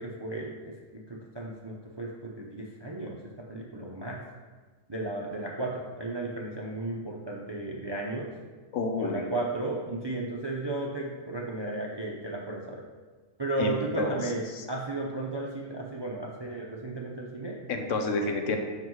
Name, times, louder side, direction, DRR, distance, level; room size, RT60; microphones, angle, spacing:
voice 1, 0.0-3.2 3.5-4.2 4.9-8.3 9.0-12.8 13.4-17.6, right 2 dB, 30° right, -2 dB, 0.5 m, -34 dB
voice 2, 8.7-9.3 13.6-14.2 17.7-18.6, left 3 dB, 70° left, 4 dB, 1.1 m, -29 dB
7.4 x 5.8 x 3.1 m, 1.4 s
omnidirectional pair, 1.4 m